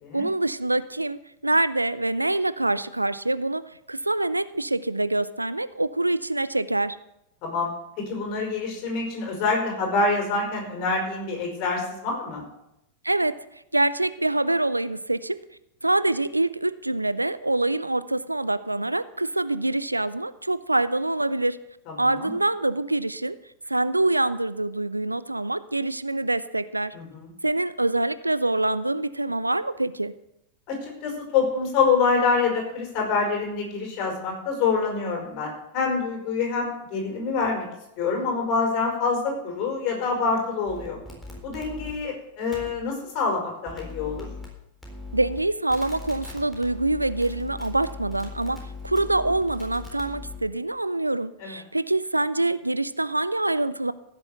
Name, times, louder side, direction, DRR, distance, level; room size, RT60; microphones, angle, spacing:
voice 1, 0.1-7.0 13.0-13.4 13.7-15.4 15.8-21.6 22.0-23.4 23.7-26.9 27.4-30.1 45.1-53.9, right 2 dB, 85° right, 15 dB, 0.5 m, -25 dB
voice 2, 8.0-12.4 21.9-22.3 26.9-27.3 30.7-37.7 38.0-41.0 41.4-44.3 51.4-51.6, left 4 dB, 40° left, 1 dB, 5.1 m, -26 dB
sound 1, 40.7-41.9 42.5-42.7 43.7-44.5 44.8-45.4 45.7-50.4, left 4 dB, 5° left, 3.9 m, -39 dB
15.5 x 7.0 x 6.7 m, 0.85 s
figure-of-eight pair, 90°, 0 cm